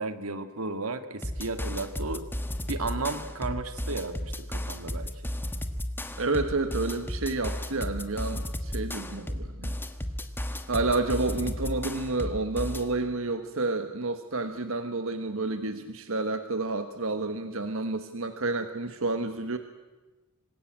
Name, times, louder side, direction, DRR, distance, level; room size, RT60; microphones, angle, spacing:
voice 1, 0.0-2.3 2.7-5.1, right 3 dB, 85° right, 9 dB, 1.8 m, -34 dB
sound 1, 1.2-12.9, left 1 dB, 10° left, 1.4 m, -34 dB
voice 2, 6.2-9.7 10.7-19.6, right 3 dB, 70° right, 8 dB, 1.4 m, -30 dB
25.5 x 20.5 x 8.8 m, 1.2 s
head